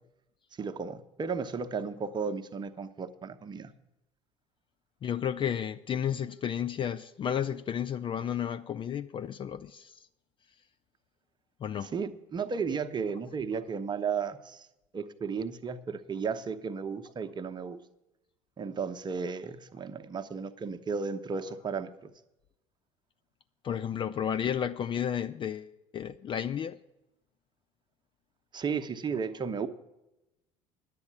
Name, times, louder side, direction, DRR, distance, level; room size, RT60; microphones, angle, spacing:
voice 1, 0.6-3.7 11.8-14.7 14.9-17.8 18.6-22.1 28.5-29.7, right 5 dB, 25° right, 0.8 m, -34 dB
voice 2, 5.0-10.0 11.6-12.0 23.6-26.8, left 9 dB, 30° left, 0.4 m, -32 dB
10.5 x 8.3 x 6.7 m
figure-of-eight pair, 65°, 17 cm